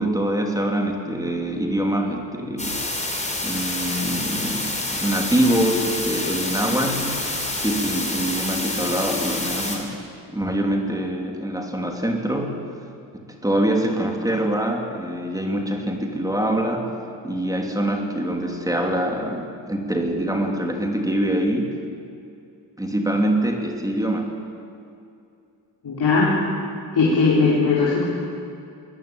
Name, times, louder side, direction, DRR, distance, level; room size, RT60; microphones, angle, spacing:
voice 1, 0.0-2.8 3.4-7.3 7.6-10.0 10.3-12.6 13.1-16.9 17.2-21.7 22.8-24.3, right 1 dB, 10° right, 2 dB, 2.9 m, -24 dB
sound 1, 2.6-9.8, left 2 dB, 15° left, 4.0 m, -27 dB
voice 2, 25.8-26.3 26.9-28.0, left 4 dB, 60° left, -5 dB, 5.0 m, -18 dB
23.0 x 20.0 x 8.8 m, 2.5 s
wide cardioid pair, 145°, 44 cm